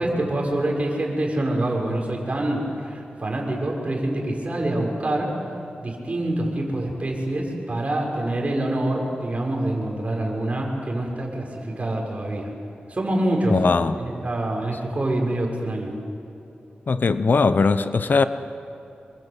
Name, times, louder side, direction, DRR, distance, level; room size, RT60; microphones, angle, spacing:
voice 1, 0.0-5.3 5.8-12.5 12.9-13.6 14.0-15.9, right 1 dB, 40° right, -1 dB, 6.8 m, -26 dB
voice 2, 13.5-14.0 16.9-18.2, left 4 dB, 65° left, 11 dB, 1.0 m, -19 dB
27.5 x 23.5 x 8.5 m, 2.8 s
wide cardioid pair, 75°, 3 cm